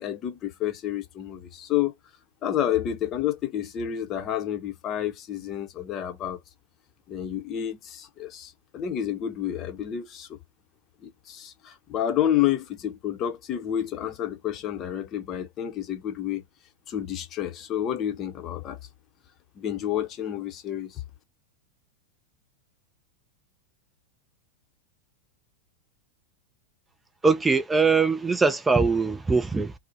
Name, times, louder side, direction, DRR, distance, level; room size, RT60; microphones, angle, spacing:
voice 1, 0.0-1.9 2.4-6.4 7.1-10.4 11.0-16.4 16.9-18.8 19.6-21.0, left 11 dB, 30° left, 0.6 m, -29 dB
voice 2, 27.2-29.7, right 4 dB, 10° right, 0.3 m, -22 dB
2.6 x 2.0 x 2.8 m
figure-of-eight pair, 90°, 0 cm